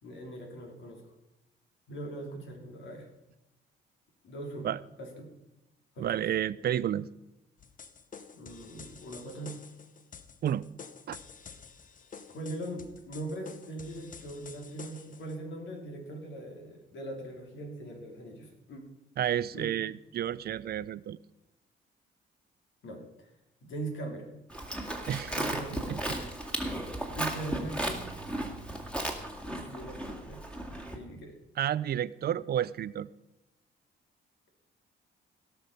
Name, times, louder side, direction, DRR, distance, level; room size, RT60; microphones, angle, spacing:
voice 1, 0.0-1.0 1.9-3.1 4.2-4.7 5.0-5.3 5.9-6.3 8.3-9.6 12.3-18.8 19.5-19.7 22.8-23.3 23.6-24.3 25.3-26.1 27.1-28.1 29.4-30.4 30.7-31.4, right 2 dB, 70° left, 2 dB, 3.0 m, -41 dB
voice 2, 6.0-7.1 10.4-10.7 11.1-11.2 19.2-21.2 25.1-25.6 25.9-26.2 31.6-33.1, right 10 dB, 55° right, 18 dB, 0.5 m, -31 dB
sound 1, 7.6-15.4, left 6 dB, 40° left, 0.9 m, -49 dB
Livestock farm animals working animals, 24.5-31.0, right 1 dB, 5° left, 2.0 m, -35 dB
17.5 x 6.0 x 5.3 m, 0.93 s
cardioid pair, 90°, 20 cm